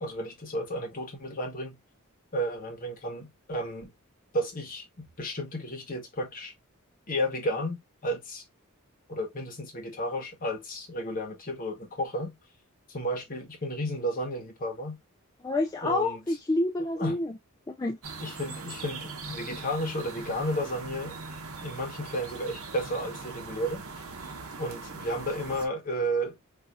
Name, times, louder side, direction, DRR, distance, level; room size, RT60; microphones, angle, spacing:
voice 1, 0.0-1.8 2.3-3.9 4.3-6.5 7.1-8.4 9.1-12.4 12.9-15.0 15.8-16.2 17.0-17.2 18.2-21.2 21.6-23.8 24.6-26.4, equal, 40° left, 1.1 m, -32 dB
voice 2, 15.4-17.3 17.7-18.0, left 2 dB, 15° left, 0.4 m, -28 dB
Residential Street Ambience Quiet Birds, 18.0-25.7, right 4 dB, 75° right, 0.9 m, -41 dB
4.1 x 2.7 x 2.3 m
head